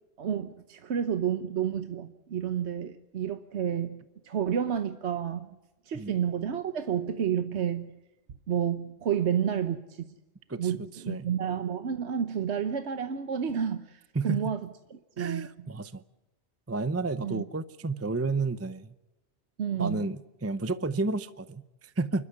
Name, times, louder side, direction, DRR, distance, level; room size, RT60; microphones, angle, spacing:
voice 1, 0.2-5.5 5.9-7.9 8.5-10.1 10.6-15.5 17.2-17.4 19.6-20.1, right 8 dB, 75° right, 10 dB, 1.2 m, -30 dB
voice 2, 10.5-11.3 14.1-14.6 15.2-16.0 16.7-18.9 19.8-22.3, right 3 dB, 15° right, 14 dB, 0.6 m, -32 dB
28.5 x 12.5 x 9.5 m, 1.0 s
omnidirectional pair, 1.1 m